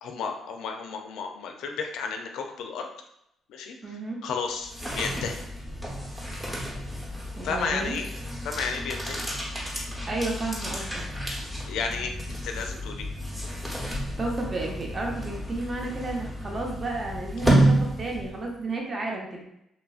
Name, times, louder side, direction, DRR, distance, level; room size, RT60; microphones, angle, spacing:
voice 1, 0.0-2.9 3.5-3.8 4.2-5.4 7.4-8.1 8.4-9.2 11.6-13.1, left 5 dB, 85° left, 4 dB, 0.4 m, -32 dB
voice 2, 3.8-4.2 7.4-8.0 10.1-10.9 14.2-19.4, right 2 dB, 35° right, 0 dB, 0.6 m, -32 dB
sound 1, 4.5-18.5, right 1 dB, 15° right, 0.9 m, -30 dB
3.0 x 2.4 x 2.4 m, 0.81 s
cardioid pair, 90°, 0 cm